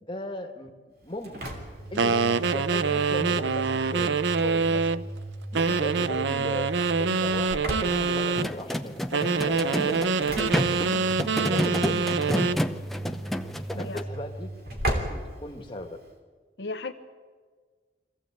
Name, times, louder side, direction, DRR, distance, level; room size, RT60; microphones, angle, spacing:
voice 1, 0.0-1.5 1.9-4.1 4.4-5.1 5.5-6.7 7.0-10.3 11.4-12.7 13.0-14.5 14.9-16.0, left 1 dB, 30° left, 3 dB, 1.7 m, -37 dB
Engine / Slam, 1.0-16.1, right 1 dB, 55° right, 3.0 m, -37 dB
sound 1, 2.0-5.0 5.5-8.5 9.1-12.6, right 4 dB, 85° right, 0.6 m, -25 dB
sound 2, 8.4-14.0, equal, ahead, 0.7 m, -30 dB
voice 2, 16.6-16.9, left 3 dB, 75° left, 5 dB, 1.0 m, -36 dB
23.5 x 15.5 x 8.0 m, 1.5 s
head